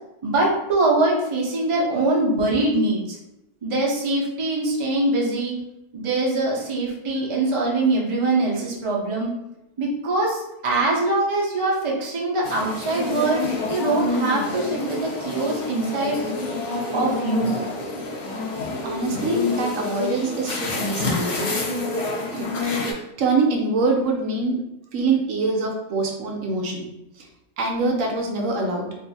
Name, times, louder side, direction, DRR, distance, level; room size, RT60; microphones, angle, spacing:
voice 1, 0.2-3.2 3.6-5.6 5.9-9.3 9.8-13.4 13.7-16.2 16.9-17.5, right 2 dB, 50° right, -3 dB, 0.3 m, -23 dB
sound 1, 12.4-22.9, left 2 dB, 55° left, 0.9 m, -28 dB
voice 2, 18.8-21.5 22.3-22.5 22.9-24.6 24.9-26.9 27.2-27.3 27.6-28.9, right 3 dB, 70° right, 1 dB, 0.9 m, -24 dB
2.6 x 2.4 x 4.0 m, 0.88 s
omnidirectional pair, 1.6 m